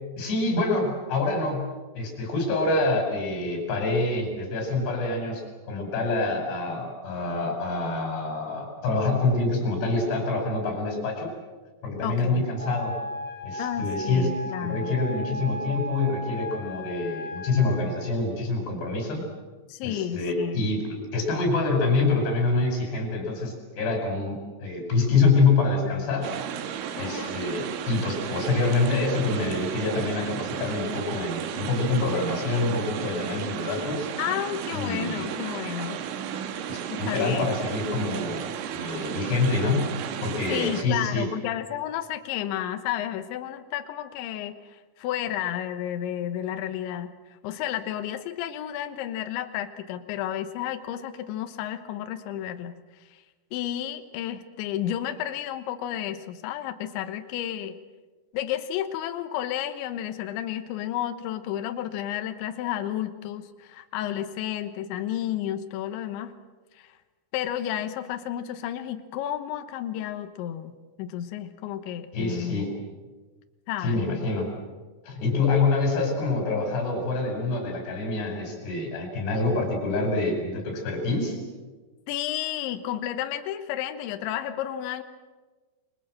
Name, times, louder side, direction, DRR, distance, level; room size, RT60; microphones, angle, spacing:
voice 1, 0.2-1.7 1.9-5.4 5.7-11.3 11.8-13.0 13.4-14.3 14.6-19.2 19.8-20.9 21.1-26.3 27.0-34.1 34.7-35.3 36.7-38.4 38.7-39.9 40.2-41.3 72.1-72.7 73.8-74.5 75.0-81.4, left 3 dB, 60° left, 1 dB, 6.9 m, -26 dB
voice 2, 12.0-12.5 13.6-14.9 19.7-20.7 27.0-27.4 34.2-36.0 36.9-37.5 40.5-47.1 47.4-52.8 53.5-57.7 58.3-66.3 66.8-66.9 67.3-72.6 73.7-74.2 82.1-85.0, left 11 dB, 75° left, 8 dB, 3.4 m, -32 dB
Wind instrument woodwind instrument, 12.5-17.9, left 1 dB, 10° right, 4.8 m, -36 dB
sound 1, 26.2-40.8, right 9 dB, 85° right, 4.1 m, -34 dB
29.0 x 22.5 x 7.6 m, 1.3 s
omnidirectional pair, 5.6 m